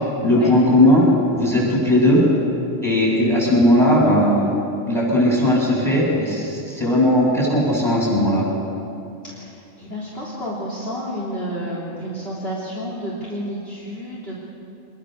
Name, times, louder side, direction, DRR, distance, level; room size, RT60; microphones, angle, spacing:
voice 1, 0.2-1.1 1.4-2.2 2.8-4.5 4.9-8.5, left 1 dB, ahead, -5 dB, 8.0 m, -17 dB
voice 2, 9.3-14.3, equal, 50° left, -6 dB, 3.9 m, -30 dB
25.5 x 22.0 x 6.6 m, 2.7 s
omnidirectional pair, 1.4 m